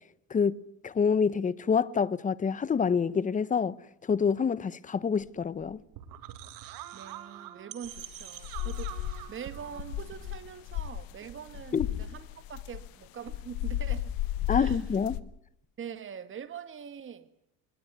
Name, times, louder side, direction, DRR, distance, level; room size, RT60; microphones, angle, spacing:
voice 1, 0.8-3.8 4.1-5.8 11.7-11.9 14.5-15.2, left 6 dB, 20° left, 0.9 m, -27 dB
sound 1, 5.2-11.9, right 12 dB, 75° right, 2.3 m, -45 dB
voice 2, 6.9-14.1 14.5-14.8 15.8-17.3, right 8 dB, 35° right, 1.9 m, -43 dB
sound 2, 7.9-9.3 9.7-11.1 11.5-12.9 13.3-15.2, left 12 dB, 75° left, 1.3 m, -34 dB
22.5 x 19.5 x 9.4 m
cardioid pair, 120°, 35 cm